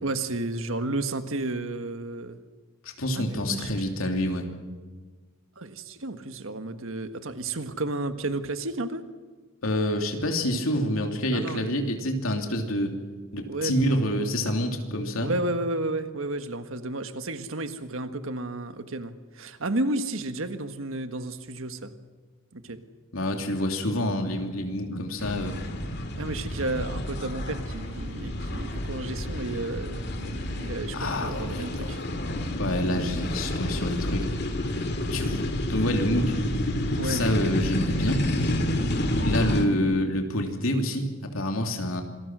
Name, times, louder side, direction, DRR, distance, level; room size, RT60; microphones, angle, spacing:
voice 1, 0.0-2.4 3.1-3.7 5.6-9.0 11.3-11.8 13.4-13.8 15.2-21.9 22.5-22.8 26.2-32.0 37.0-37.2, right 2 dB, 75° right, 9 dB, 1.6 m, -32 dB
voice 2, 3.0-4.5 9.6-13.0 13.3-15.3 23.1-25.6 30.9-31.9 32.6-34.3 35.1-36.3 37.0-38.2 39.2-42.0, left 1 dB, 85° left, 3 dB, 3.1 m, -27 dB
sound 1, 25.2-39.6, left 1 dB, 55° left, 2.3 m, -29 dB
26.5 x 20.5 x 6.3 m, 1.4 s
head